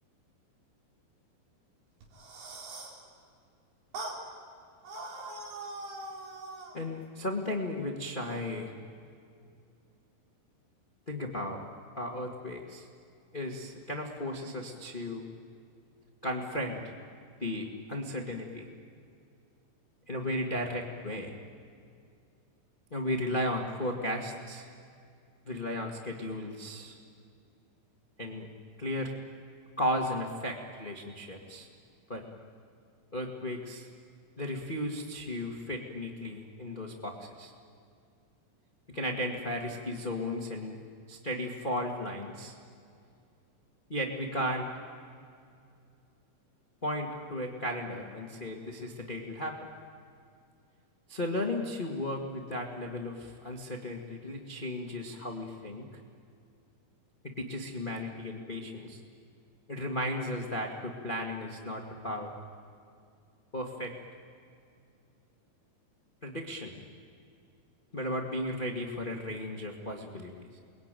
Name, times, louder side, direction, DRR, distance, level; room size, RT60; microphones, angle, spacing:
sound 1, 2.0-3.0 3.9-4.2 4.8-6.8, right 2 dB, 85° right, 5.9 m, -41 dB
voice 1, 6.7-8.7 11.1-11.6 11.9-12.9 13.3-15.2 16.2-16.9 17.4-18.7 20.1-21.4 22.9-24.7 25.4-27.0 28.2-28.5 28.8-29.1 29.8-31.7 32.1-32.2 33.1-33.9 34.4-37.5 38.9-40.8 41.1-42.6 43.9-44.7 46.8-49.7 51.1-55.8 57.4-59.0 59.7-62.3 63.5-63.9 66.2-66.8 67.9-70.6, left 1 dB, 60° left, 0 dB, 0.5 m, -35 dB
29.0 x 22.0 x 9.2 m, 2.4 s
omnidirectional pair, 4.9 m